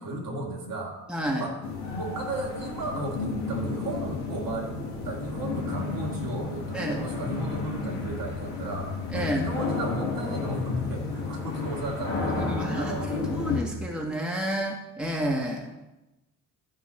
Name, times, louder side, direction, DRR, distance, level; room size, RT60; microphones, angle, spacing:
voice 1, 0.0-1.0 1.4-1.6 1.9-4.8 5.0-13.1, right 1 dB, 55° right, -1 dB, 2.0 m, -34 dB
voice 2, 1.1-1.5 6.7-7.0 9.1-9.5 12.3-12.9 13.2-15.7, right 1 dB, ahead, -1 dB, 1.4 m, -30 dB
sound 1, 1.6-13.6, left 4 dB, 85° left, 1.5 m, -32 dB
9.6 x 4.0 x 4.2 m, 1.0 s
hypercardioid pair, 60°, 41 cm